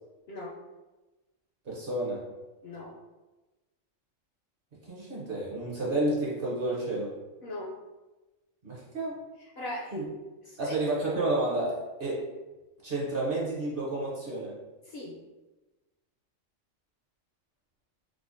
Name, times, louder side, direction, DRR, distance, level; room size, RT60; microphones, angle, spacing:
voice 1, 0.3-0.6 2.6-3.0 7.4-7.8 9.4-9.9 10.5-10.8 14.8-15.2, left 1 dB, 65° left, -4 dB, 0.7 m, -39 dB
voice 2, 1.7-2.2 4.8-7.1 8.6-9.2 9.9-10.1 10.6-12.2 12.8-14.5, right 2 dB, 50° right, -5 dB, 0.8 m, -30 dB
4.8 x 2.0 x 2.5 m, 1.1 s
omnidirectional pair, 1.4 m